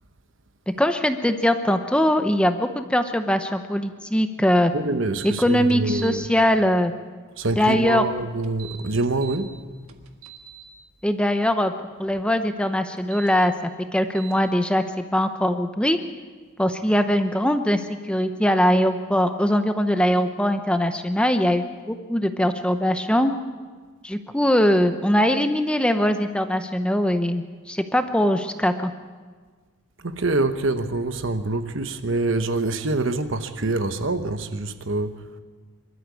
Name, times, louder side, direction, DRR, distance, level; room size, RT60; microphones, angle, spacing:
voice 1, 0.8-4.7 5.2-6.9 7.6-8.0 11.0-11.7 12.0-13.5 13.9-16.0 16.6-23.3 24.0-28.9, equal, 5° left, 0.7 m, -21 dB
voice 2, 4.7-6.3 7.4-9.5 30.0-35.2, right 2 dB, 65° right, 1.1 m, -25 dB
sound 1, 5.2-5.3 5.7-6.1 8.4-9.4 9.9-10.6 13.0-13.3 14.2-14.3, right 13 dB, 85° right, 1.6 m, -42 dB
24.5 x 13.0 x 8.4 m
head